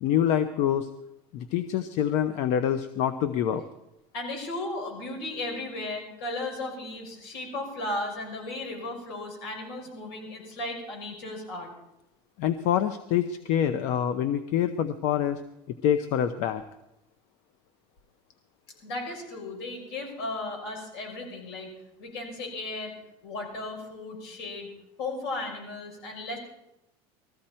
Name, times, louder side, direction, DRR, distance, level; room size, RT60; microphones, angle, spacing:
voice 1, 0.0-0.9 1.3-3.6 12.4-15.4 15.8-16.6, left 10 dB, 65° left, 10 dB, 0.8 m, -26 dB
voice 2, 4.1-11.7 18.8-21.7 22.0-22.9 23.2-24.7 25.0-26.4, left 2 dB, 80° left, 1 dB, 5.8 m, -35 dB
20.0 x 14.5 x 4.4 m, 0.87 s
supercardioid pair, 125°, 13 cm